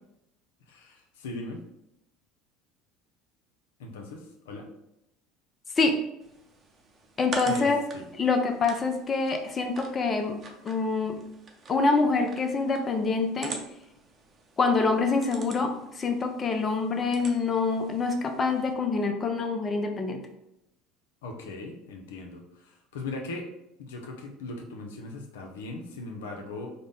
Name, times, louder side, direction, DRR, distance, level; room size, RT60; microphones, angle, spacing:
voice 1, 0.7-1.6 3.8-4.7 7.5-8.0 21.2-23.5 23.8-26.7, left 2 dB, 80° left, 2 dB, 0.6 m, -39 dB
sound 1, 6.2-18.7, right 3 dB, 35° right, 0.7 m, -45 dB
voice 2, 7.2-7.8 8.2-11.2 11.7-13.5 14.6-20.2, left 4 dB, 30° left, 4 dB, 0.5 m, -26 dB
3.8 x 2.1 x 3.5 m, 0.85 s
hypercardioid pair, 80°, 0 cm